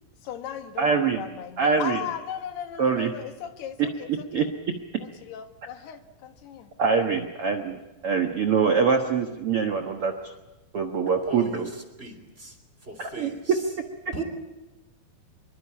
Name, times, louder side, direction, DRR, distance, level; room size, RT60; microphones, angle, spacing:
voice 1, 0.2-4.5 5.0-6.7, left 9 dB, 90° left, 3.7 m, -37 dB
voice 2, 0.8-1.2 1.6-2.0 2.8-3.1 3.8-3.9 4.3-4.8 6.8-10.3 10.7-11.7 13.0-13.3, right 5 dB, 60° right, 1.6 m, -24 dB
voice 3, 11.1-13.7 14.1-14.2, right 3 dB, 15° right, 3.1 m, -39 dB
25.5 x 23.5 x 8.6 m
omnidirectional pair, 4.5 m